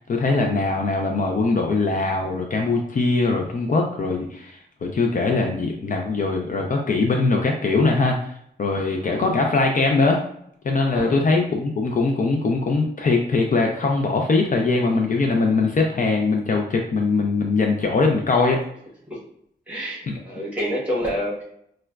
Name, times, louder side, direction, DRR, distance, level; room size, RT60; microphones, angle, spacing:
voice 1, 0.0-8.3 8.6-10.2 10.6-18.6 20.1-20.2, left 3 dB, 45° left, 1 dB, 0.4 m, -21 dB
voice 2, 9.0-9.3 10.9-11.2 19.0-19.2 19.7-21.5, equal, 5° right, -5 dB, 1.0 m, -28 dB
4.7 x 2.1 x 2.3 m, 0.71 s
wide cardioid pair, 175°, 18 cm